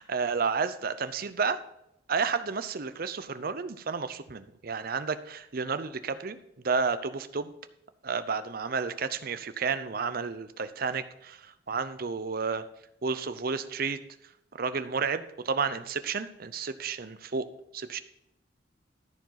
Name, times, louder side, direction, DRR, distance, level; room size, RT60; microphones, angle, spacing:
voice 1, 0.0-1.6 2.1-6.4 6.6-7.5 8.0-12.7 13.0-14.0 14.6-17.5 17.7-18.0, right 5 dB, 50° right, 12 dB, 0.6 m, -31 dB
13.0 x 4.7 x 5.8 m, 0.81 s
head